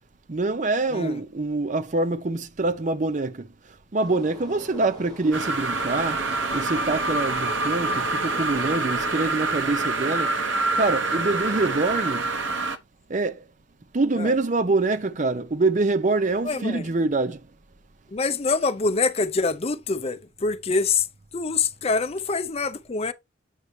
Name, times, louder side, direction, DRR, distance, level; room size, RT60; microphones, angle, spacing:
voice 1, 0.3-3.5 3.9-6.2 6.5-10.3 10.8-12.3 13.1-13.4 13.9-17.4, right 3 dB, 40° right, 0.6 m, -25 dB
sound 1, 4.0-12.0, left 1 dB, 20° right, 3.9 m, -42 dB
sound 2, 5.3-12.8, right 3 dB, 85° right, 0.9 m, -26 dB
voice 2, 16.4-16.9 18.1-21.1 21.3-23.1, left 4 dB, 35° left, 0.6 m, -25 dB
8.3 x 5.4 x 3.2 m
head